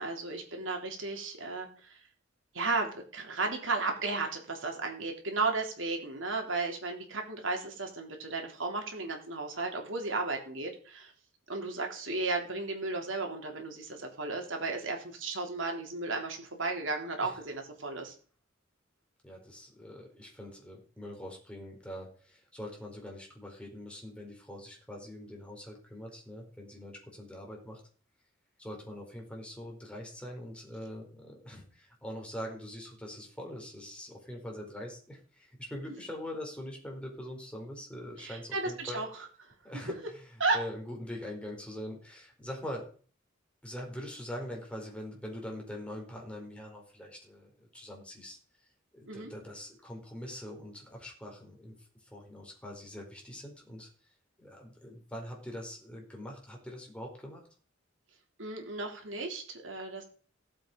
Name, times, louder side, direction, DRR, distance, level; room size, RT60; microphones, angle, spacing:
voice 1, 0.0-2.0 2.5-11.1 11.5-18.1 38.2-39.3 39.7-39.9 40.4-40.6 49.1-49.3 58.4-60.0, right 3 dB, 70° right, 3 dB, 3.5 m, -34 dB
voice 2, 19.2-27.8 28.6-39.0 39.6-42.8 43.6-48.4 48.9-51.8 52.1-53.9 54.4-57.4, left 1 dB, 5° left, 0 dB, 4.7 m, -43 dB
17.5 x 7.9 x 5.3 m, 0.43 s
head